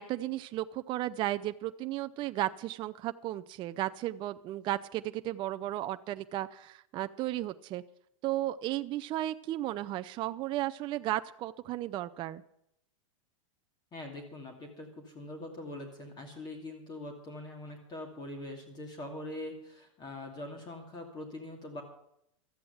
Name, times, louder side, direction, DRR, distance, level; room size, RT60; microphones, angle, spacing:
voice 1, 0.0-7.8 8.2-12.4, right 14 dB, 30° right, 9 dB, 0.4 m, -34 dB
voice 2, 13.9-21.8, left 1 dB, 25° left, 4 dB, 2.3 m, -43 dB
13.0 x 8.7 x 7.8 m, 0.76 s
hypercardioid pair, 125°, 17 cm